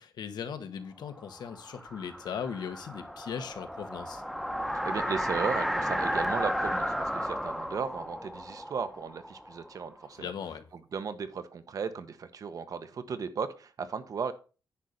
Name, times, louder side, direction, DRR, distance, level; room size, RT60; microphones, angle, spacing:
voice 1, 0.0-4.2 10.2-10.6, left 7 dB, 75° left, 1.3 m, -38 dB
sound 1, 1.2-10.0, equal, ahead, 1.0 m, -33 dB
voice 2, 4.8-10.3 10.9-14.3, right 6 dB, 55° right, 1.1 m, -35 dB
10.0 x 4.1 x 6.6 m
cardioid pair, 120°, 7 cm